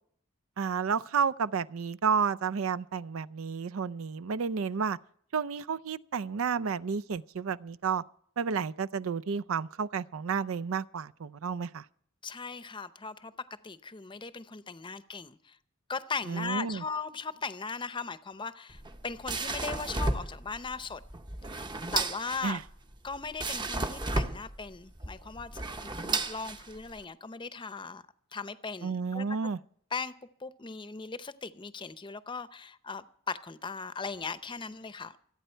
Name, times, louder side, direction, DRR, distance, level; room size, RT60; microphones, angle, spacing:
voice 1, 0.6-5.0 5.3-8.0 8.4-11.8 16.3-16.8 22.4-22.6 28.8-29.6, right 6 dB, 85° right, 0.5 m, -31 dB
voice 2, 12.2-15.6 15.9-21.0 21.5-21.7 21.9-22.6 23.0-28.0 28.3-29.2 29.9-30.1 30.4-35.2, left 4 dB, 25° left, 0.7 m, -38 dB
sound 1, 18.7-27.0, right 2 dB, 20° right, 0.7 m, -34 dB
27.0 x 9.2 x 4.5 m
head